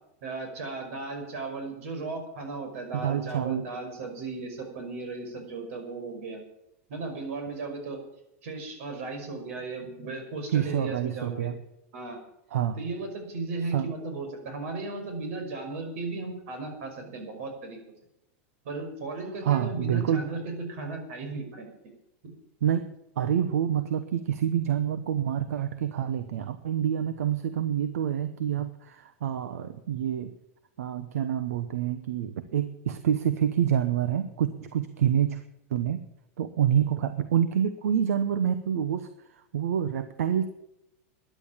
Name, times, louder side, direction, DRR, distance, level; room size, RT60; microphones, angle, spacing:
voice 1, 0.2-6.4 6.9-8.0 8.4-11.5 11.9-12.2 12.8-17.8 18.6-21.7 22.2-22.3, right 3 dB, 70° right, 5 dB, 5.6 m, -36 dB
voice 2, 2.9-3.6 10.5-11.6 12.5-12.8 13.7-13.9 19.4-20.2 22.6-22.9 23.2-30.3 30.8-35.4 35.7-36.0 36.4-39.1 39.5-40.5, right 9 dB, 90° right, 11 dB, 1.1 m, -27 dB
13.0 x 10.5 x 7.4 m, 0.84 s
supercardioid pair, 135°, 8 cm